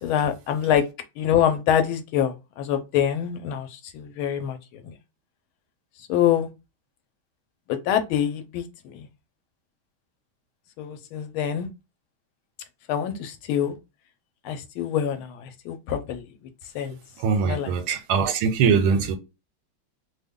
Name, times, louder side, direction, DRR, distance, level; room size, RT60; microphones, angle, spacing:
voice 1, 0.0-0.8 1.2-4.9 6.0-6.5 7.7-9.1 10.8-11.7 12.9-13.7 14.4-16.2 16.7-17.0 17.4-17.7, left 9 dB, 80° left, 1.4 m, -25 dB
voice 2, 17.2-19.2, right 6 dB, 85° right, 1.5 m, -22 dB
3.3 x 2.2 x 3.5 m
omnidirectional pair, 2.3 m